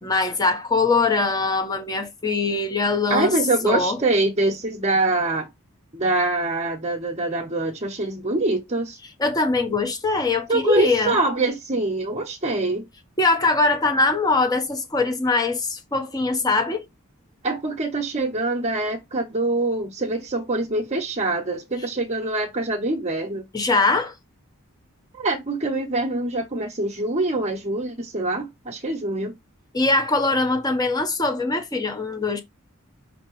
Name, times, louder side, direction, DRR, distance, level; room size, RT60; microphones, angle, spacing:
voice 1, 0.0-3.4 3.6-4.0 9.2-11.2 13.2-16.8 23.5-24.1 29.7-32.4, left 3 dB, 15° left, 0.8 m, -22 dB
voice 2, 3.1-5.5 5.9-9.0 10.5-12.8 17.4-23.5 25.1-29.3, right 2 dB, 30° right, 0.8 m, -24 dB
5.4 x 2.9 x 3.0 m
head